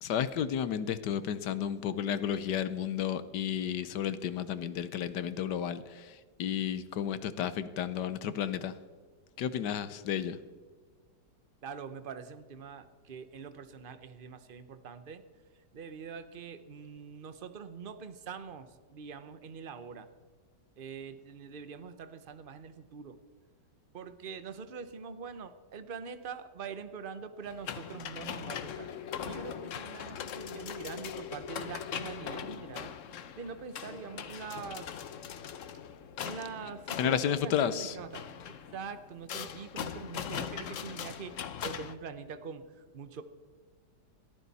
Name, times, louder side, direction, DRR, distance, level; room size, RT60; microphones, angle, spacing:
voice 1, 0.0-8.7 9.4-10.4 37.0-37.9, left 9 dB, 75° left, 14 dB, 1.4 m, -32 dB
voice 2, 11.6-15.2 15.7-20.1 20.8-23.2 23.9-28.9 29.2-32.9 33.4-35.0 36.2-43.2, right 6 dB, 40° right, 11 dB, 0.9 m, -44 dB
sound 1, 27.4-41.9, left 8 dB, 55° left, 1.0 m, -41 dB
21.5 x 14.0 x 4.2 m, 1.5 s
omnidirectional pair, 1.9 m